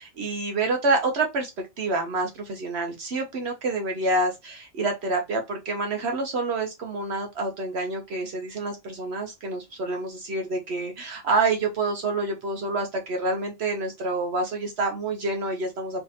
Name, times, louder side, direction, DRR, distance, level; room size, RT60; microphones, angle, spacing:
voice 1, 0.0-1.5 1.8-16.0, right 3 dB, 65° right, 0.9 m, -27 dB
3.5 x 3.3 x 2.7 m
omnidirectional pair, 1.3 m